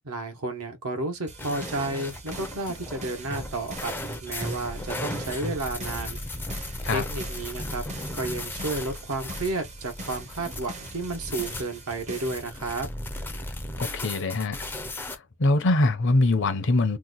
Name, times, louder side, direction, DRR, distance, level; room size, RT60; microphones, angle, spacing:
voice 1, 0.0-3.9 4.2-6.2 6.9-7.8 8.1-12.9, right 2 dB, 70° right, 1.1 m, -32 dB
sound 1, 1.3-12.4, right 2 dB, 30° right, 0.6 m, -43 dB
sound 2, 1.4-15.2, left 1 dB, 10° left, 0.4 m, -36 dB
voice 2, 13.8-14.7 15.0-17.0, left 2 dB, 55° left, 0.6 m, -23 dB
2.9 x 2.2 x 3.8 m
head